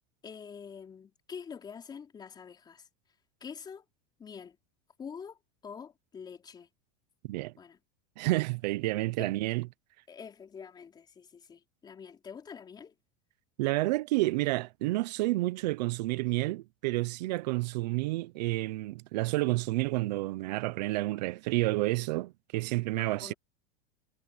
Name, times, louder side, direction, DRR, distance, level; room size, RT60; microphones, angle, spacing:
voice 1, 0.2-2.9 3.4-3.8 4.2-4.6 5.0-6.7 7.6-7.8 9.2-9.3 10.1-12.9 23.0-23.3, left 6 dB, 20° left, 4.3 m, -46 dB
voice 2, 8.2-9.7 13.6-23.3, right 19 dB, 75° right, 0.8 m, -30 dB
supercardioid pair, 150°, 21 cm